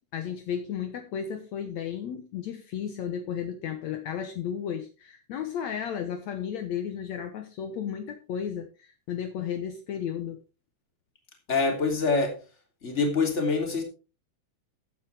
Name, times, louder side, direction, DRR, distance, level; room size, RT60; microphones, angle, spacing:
voice 1, 0.1-10.4, left 8 dB, 70° left, 2.3 m, -34 dB
voice 2, 11.5-12.4 12.8-13.8, left 4 dB, 20° left, 3.1 m, -25 dB
15.0 x 9.5 x 3.4 m
omnidirectional pair, 3.5 m